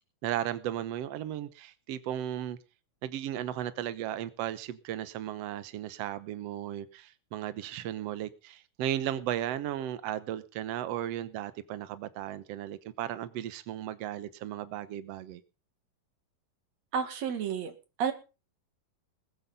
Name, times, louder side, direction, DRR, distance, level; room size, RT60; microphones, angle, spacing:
voice 1, 0.2-2.6 3.0-15.4, right 11 dB, 90° right, 1.4 m, -35 dB
voice 2, 16.9-17.7 18.0-18.1, right 7 dB, 50° right, 2.8 m, -30 dB
20.5 x 8.4 x 5.4 m
omnidirectional pair, 4.3 m